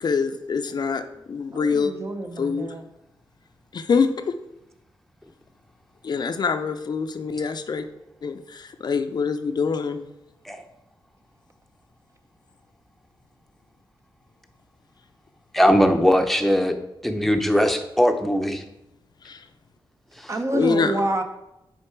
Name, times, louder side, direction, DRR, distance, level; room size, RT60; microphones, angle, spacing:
voice 1, 0.0-1.0 1.3-1.9 2.4-2.7 3.7-4.3 6.0-7.8 8.2-10.1 19.2-19.4 20.5-21.0, left 5 dB, 55° left, 8 dB, 0.5 m, -25 dB
voice 2, 1.5-2.8 20.3-21.2, right 1 dB, 35° right, 6 dB, 0.7 m, -27 dB
voice 3, 15.5-16.7 17.0-18.6, equal, 5° left, 6 dB, 0.7 m, -20 dB
6.6 x 4.6 x 4.5 m, 0.87 s
wide cardioid pair, 95°, 8 cm